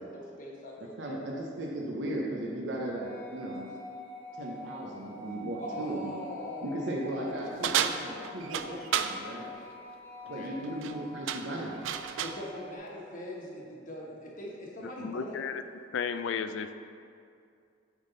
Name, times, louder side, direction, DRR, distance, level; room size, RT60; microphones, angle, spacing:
voice 1, 0.0-1.2 5.6-6.8 7.1-7.8 10.3-10.5 12.2-15.3, left 1 dB, 45° left, -3 dB, 1.2 m, -41 dB
voice 2, 1.0-3.7 4.4-6.2 6.6-9.5 10.3-11.8, right 1 dB, 70° right, -2 dB, 0.7 m, -36 dB
sound 1, 3.0-12.8, left 2 dB, 10° left, 0.7 m, -46 dB
sound 2, 7.6-9.2 10.6-10.9 11.3-12.4, right 9 dB, 90° right, 0.3 m, -31 dB
voice 3, 15.0-15.6 15.9-16.7, left 6 dB, 75° left, 10 dB, 0.3 m, -33 dB
9.0 x 3.7 x 3.9 m, 2.4 s
head